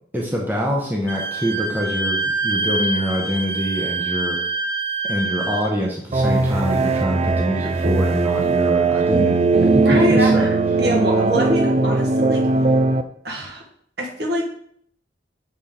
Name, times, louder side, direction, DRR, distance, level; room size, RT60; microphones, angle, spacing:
voice 1, 0.1-4.4 5.0-10.5, equal, 10° right, -2 dB, 0.9 m, -25 dB
Wind instrument woodwind instrument, 1.1-5.7, right 3 dB, 10° left, 1.4 m, -25 dB
sound 1, 6.1-13.0, right 3 dB, 35° right, 0.3 m, -19 dB
voice 2, 9.8-12.4 13.2-13.6 14.0-14.5, equal, 60° right, -1 dB, 1.5 m, -24 dB
6.7 x 4.0 x 3.6 m, 0.64 s
head